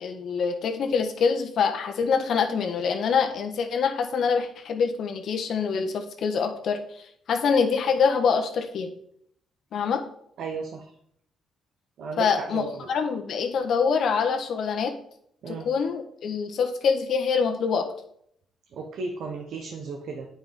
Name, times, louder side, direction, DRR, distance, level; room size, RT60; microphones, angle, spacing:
voice 1, 0.0-6.8 7.3-8.9 9.7-10.0 12.2-12.6 12.9-14.9 15.5-17.9, left 6 dB, 65° left, 4 dB, 1.4 m, -25 dB
voice 2, 10.4-10.9 12.0-12.9 15.4-15.7 18.7-20.3, right 4 dB, 70° right, 3 dB, 1.2 m, -34 dB
9.0 x 5.1 x 5.4 m, 0.69 s
cardioid pair, 90°, 0 cm